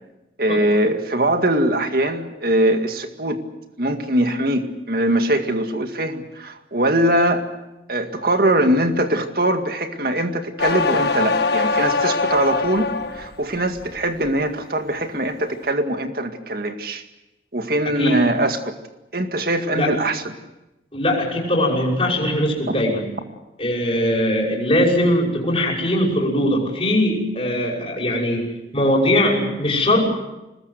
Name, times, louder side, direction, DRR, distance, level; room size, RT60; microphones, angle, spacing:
voice 1, 0.4-3.4 3.8-7.5 7.9-17.0 17.5-18.7 19.1-20.3, right 1 dB, 55° right, 6 dB, 2.1 m, -22 dB
sound 1, 10.6-13.3 13.7-14.3, left 4 dB, 65° left, 1.7 m, -22 dB
voice 2, 20.9-23.2 23.6-28.5 28.7-30.0, left 1 dB, 30° left, -1 dB, 6.1 m, -20 dB
25.0 x 20.5 x 8.1 m, 0.98 s
head